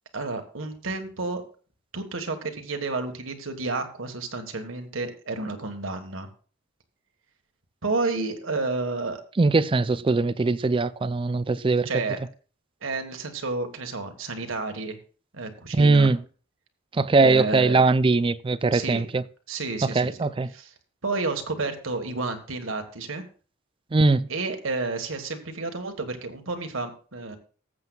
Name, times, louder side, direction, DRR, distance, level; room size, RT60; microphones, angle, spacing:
voice 1, 0.1-1.4 1.9-6.3 7.8-9.2 11.8-12.2 12.8-15.0 15.3-16.1 17.2-17.8 18.7-19.1 19.5-20.2 20.5-20.7 21.0-23.2 24.3-27.4, right 3 dB, 75° right, 1.5 m, -30 dB
voice 2, 9.4-11.9 15.7-16.2 16.9-19.2 19.9-20.5 23.9-24.3, right 3 dB, 25° right, 0.4 m, -21 dB
19.0 x 7.7 x 2.4 m
head